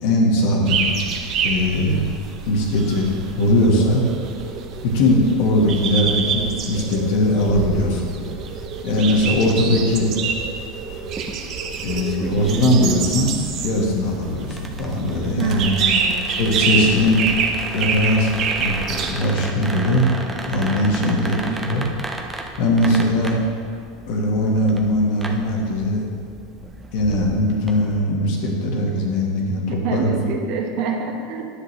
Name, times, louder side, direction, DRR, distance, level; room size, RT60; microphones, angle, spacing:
voice 1, 0.0-0.9 1.4-2.0 2.4-4.0 4.8-8.1 8.8-10.1 11.7-13.3 13.6-15.7 16.4-17.2 17.7-20.1 20.5-21.9 22.6-23.4 24.1-26.1 26.9-30.1, left 1 dB, 65° left, 0 dB, 1.6 m, -20 dB
sound 1, 0.7-19.1, right 6 dB, 45° right, 0.8 m, -26 dB
sound 2, 11.1-28.0, right 2 dB, 10° right, 0.7 m, -35 dB
voice 2, 15.4-16.2 21.0-21.6 29.8-31.4, right 4 dB, 60° right, 2 dB, 1.2 m, -26 dB
9.9 x 7.0 x 3.3 m, 2.3 s
supercardioid pair, 125°, 0 cm